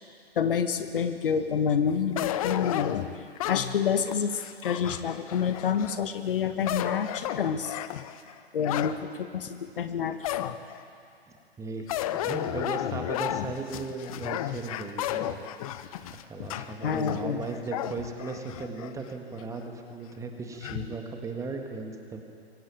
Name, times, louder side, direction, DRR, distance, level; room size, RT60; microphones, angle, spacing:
voice 1, 0.4-3.0 3.5-7.8 8.5-10.6 16.8-17.5, left 7 dB, 55° left, 9 dB, 1.5 m, -28 dB
sound 1, 2.2-6.0 6.5-9.0 9.5-9.6 10.2-10.8 11.9-18.9 19.4-19.5 20.6-20.9, left 12 dB, 35° left, 0.8 m, -33 dB
voice 2, 11.3-15.5 16.1-22.2, right 3 dB, 10° right, 3 dB, 1.8 m, -37 dB
24.0 x 16.5 x 9.1 m, 2.5 s
figure-of-eight pair, 120°, 32 cm